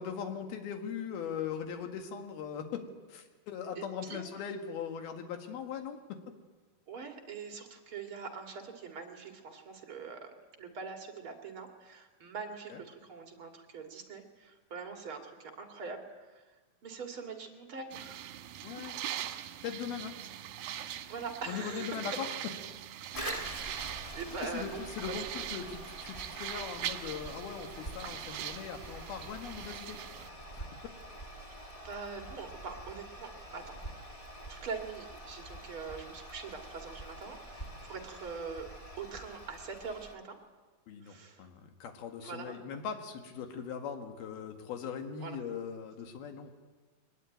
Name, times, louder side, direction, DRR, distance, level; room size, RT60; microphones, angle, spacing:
voice 1, 0.0-2.8 3.1-6.2 12.7-12.8 18.6-19.0 19.6-20.1 21.5-22.3 24.4-25.3 25.5-30.0 30.5-30.6 40.9-46.5, left 7 dB, 85° left, 5 dB, 3.8 m, -40 dB
voice 2, 3.7-4.2 6.9-10.3 10.6-16.6 16.8-18.4 21.1-22.1 23.1-23.6 24.1-25.5 31.8-33.8 34.5-38.7 39.0-40.4 41.0-41.5 42.2-42.6 45.2-45.5, right 5 dB, 40° right, 3 dB, 2.6 m, -43 dB
sound 1, 17.9-30.3, right 11 dB, 75° right, 2.7 m, -42 dB
Toilet flush, 23.1-40.2, equal, 55° left, 0.3 m, -46 dB
23.0 x 20.0 x 9.3 m, 1.3 s
omnidirectional pair, 4.2 m